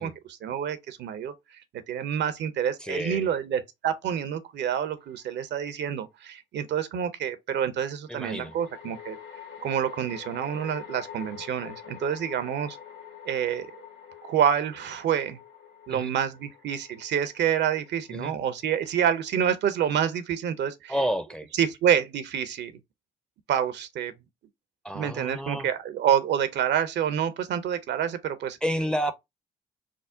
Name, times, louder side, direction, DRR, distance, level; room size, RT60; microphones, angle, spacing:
voice 1, 0.0-1.3 1.9-9.2 9.6-12.8 13.2-13.7 14.2-15.4 15.9-20.9 21.6-22.7 23.5-24.1 24.9-28.6, right 9 dB, 65° right, 0.6 m, -27 dB
voice 2, 2.8-3.3 8.1-8.6 15.9-16.1 18.1-18.3 20.9-21.5 24.8-25.7 28.6-29.1, equal, 5° left, 0.5 m, -30 dB
sound 1, 5.1-5.2 8.1-19.4, left 8 dB, 65° left, 1.5 m, -46 dB
3.6 x 2.0 x 3.7 m
hypercardioid pair, 50°, 20 cm